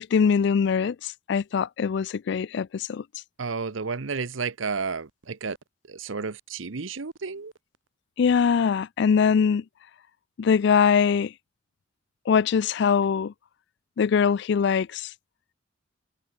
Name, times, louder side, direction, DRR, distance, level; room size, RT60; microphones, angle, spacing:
voice 1, 0.0-3.0 8.2-9.6 10.4-11.3 12.3-13.3 14.0-15.1, left 6 dB, 60° left, 0.3 m, -22 dB
voice 2, 3.4-5.6 5.9-7.5, right 4 dB, 80° right, 0.9 m, -31 dB
head